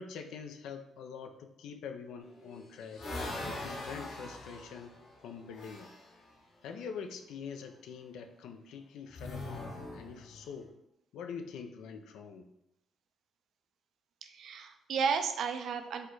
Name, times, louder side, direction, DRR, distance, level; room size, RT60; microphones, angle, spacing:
voice 1, 0.0-3.0 3.4-4.9 5.2-5.9 6.6-10.7 11.1-12.5, left 6 dB, 85° left, 6 dB, 0.4 m, -44 dB
sound 1, 2.2-6.1 9.1-10.6, left 2 dB, 65° left, 1.1 m, -42 dB
voice 2, 14.2-16.1, right 6 dB, 70° right, 7 dB, 0.4 m, -33 dB
4.4 x 2.2 x 4.6 m, 0.84 s
cardioid pair, 90°, 0 cm